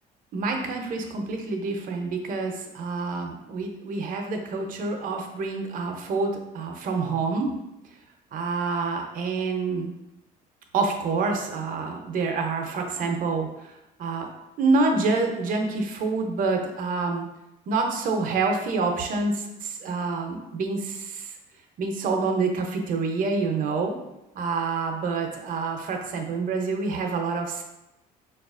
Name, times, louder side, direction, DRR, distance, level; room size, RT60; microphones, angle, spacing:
voice 1, 0.3-7.5 8.3-9.9 10.7-14.3 14.6-17.3 17.7-21.4 21.8-24.0 24.4-27.6, right 4 dB, 55° right, 3 dB, 0.6 m, -27 dB
4.6 x 2.4 x 2.4 m, 0.92 s
cardioid pair, 110°, 17 cm